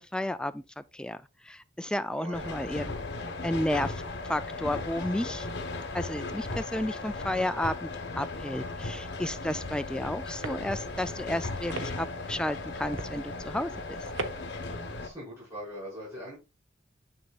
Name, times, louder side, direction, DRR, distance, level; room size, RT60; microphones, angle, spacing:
voice 1, 0.1-1.2 1.5-2.8 3.4-4.0 4.3-5.5 5.9-7.9 8.2-14.0, left 1 dB, 5° left, 0.3 m, -32 dB
voice 2, 2.1-2.6 3.2-3.4 15.0-16.4, equal, 25° right, 4.9 m, -42 dB
sound 1, 2.3-15.1, left 3 dB, 60° left, 1.2 m, -37 dB
sound 2, 9.7-14.7, right 3 dB, 85° right, 0.8 m, -42 dB
8.1 x 6.3 x 2.4 m
head